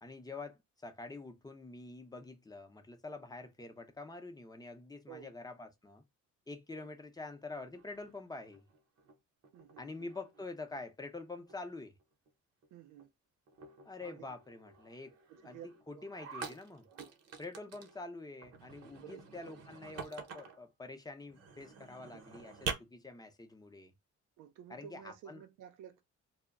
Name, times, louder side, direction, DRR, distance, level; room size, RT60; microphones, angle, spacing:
voice 1, 0.0-6.0 6.5-8.6 9.8-12.0 13.8-15.1 15.4-15.6 15.9-16.8 17.4-23.9 24.7-25.4, left 3 dB, 15° left, 0.6 m, -46 dB
sound 1, 7.7-9.2 9.4-10.8 11.2-11.7 12.0-12.3 12.6-12.7 13.0-13.1 13.5-18.0 18.4-20.7 21.3-22.7, right 6 dB, 55° right, 0.8 m, -47 dB
voice 2, 9.5-10.1 12.7-13.1 14.0-14.3 15.3-15.7 15.9-16.1 16.9-17.1 19.0-19.2 19.5-19.6 24.4-26.0, right 10 dB, 85° right, 0.5 m, -52 dB
2.1 x 2.1 x 3.5 m
cardioid pair, 90°, 30 cm